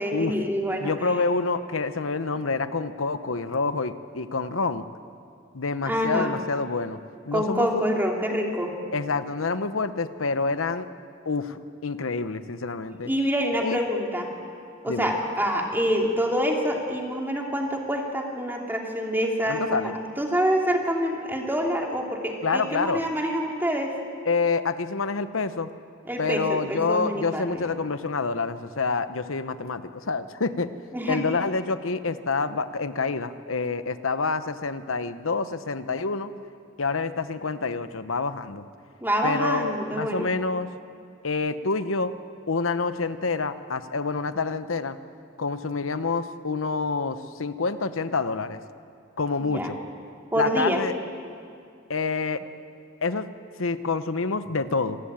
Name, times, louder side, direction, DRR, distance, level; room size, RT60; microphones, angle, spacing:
voice 1, 0.0-0.9 5.8-6.4 7.3-8.7 13.1-14.3 14.8-24.0 26.1-27.7 30.9-31.2 39.0-40.3 49.4-49.7 50.3-50.8, equal, 10° right, 1 dB, 2.9 m, -26 dB
voice 2, 0.8-4.8 5.5-7.0 7.3-7.7 8.9-10.9 11.2-13.1 13.6-13.8 14.9-15.1 19.5-19.9 22.4-23.0 24.3-25.7 26.2-30.7 31.1-36.3 36.8-38.6 39.2-40.7 41.2-42.2 42.5-45.0 45.4-48.6 49.2-49.8 50.3-50.9 51.9-52.4 53.0-53.3 53.6-55.0, left 4 dB, 90° left, 12 dB, 1.0 m, -27 dB
26.0 x 19.0 x 8.8 m, 2.4 s
head